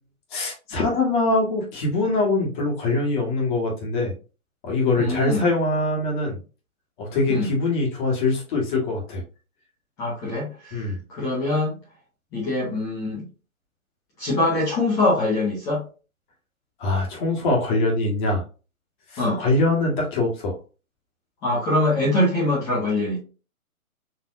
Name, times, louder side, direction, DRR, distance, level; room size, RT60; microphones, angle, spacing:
voice 1, 0.3-4.1 4.6-6.4 7.0-9.2 10.7-11.0 16.8-18.4 19.1-20.6, left 2 dB, 35° left, -1 dB, 1.8 m, -23 dB
voice 2, 5.0-5.4 7.3-7.5 10.0-10.8 11.2-11.8 12.3-13.2 14.2-15.8 19.2-19.4 21.4-23.2, left 2 dB, 10° left, -7 dB, 0.6 m, -23 dB
4.4 x 3.3 x 2.6 m, 0.34 s
hypercardioid pair, 145°, 43 cm